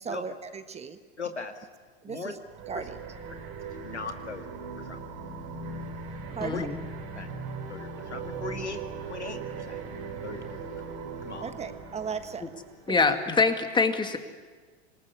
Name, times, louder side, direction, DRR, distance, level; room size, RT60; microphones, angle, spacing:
voice 1, 0.0-1.0 2.0-2.4 2.7-3.0 6.3-6.7 11.4-12.4 12.9-13.0, right 6 dB, 20° right, 10 dB, 1.4 m, -36 dB
voice 2, 1.2-1.5 2.1-2.3 2.7-2.8 3.8-4.4 4.9-5.0 6.5-6.6 7.2-7.3 7.7-8.8 9.1-9.8 10.2-10.8 11.2-11.5 13.0-13.1, left 4 dB, 90° left, 6 dB, 2.3 m, -38 dB
sound 1, 2.5-13.0, right 4 dB, 50° right, 5.4 m, -39 dB
voice 3, 6.4-6.8 12.4-12.5 12.9-14.2, left 4 dB, 15° left, 7 dB, 2.2 m, -24 dB
27.0 x 19.5 x 9.8 m, 1.4 s
figure-of-eight pair, 90°, 33 cm